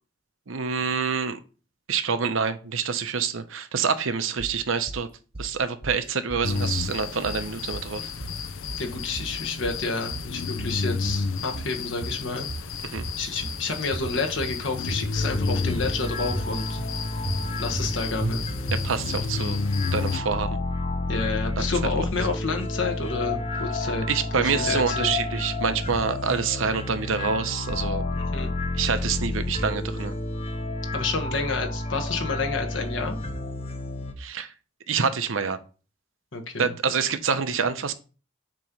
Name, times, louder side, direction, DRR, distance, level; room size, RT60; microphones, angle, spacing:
voice 1, 0.5-1.4 1.9-5.1 5.4-8.1 12.8-13.1 18.8-19.6 19.9-20.6 21.6-21.7 24.1-28.0 28.7-30.1 34.2-34.5 34.9-35.6 36.6-37.9, right 5 dB, 85° right, 10 dB, 0.8 m, -26 dB
sound 1, 4.4-5.0 5.3-6.0 6.3-7.0 7.3-7.9 8.2-8.9 9.2-9.9 10.1-10.8 11.1-11.8 12.0-12.7 13.0-13.6 13.9-14.6 14.9-15.5 15.8-16.5 16.8-16.9 17.3-17.9 18.2-18.3 18.7-19.2, right 1 dB, 25° right, 0.6 m, -34 dB
sound 2, 6.4-20.2, left 4 dB, 90° left, 0.6 m, -32 dB
voice 2, 8.8-12.5 13.2-16.8 17.6-18.5 21.1-24.0 24.4-25.1 28.1-28.5 30.9-33.2 36.3-36.7, left 3 dB, 75° left, 3 dB, 1.4 m, -29 dB
sound 3, 15.1-34.1, left 2 dB, 30° left, 0.8 m, -30 dB
7.5 x 3.0 x 5.2 m, 0.35 s
head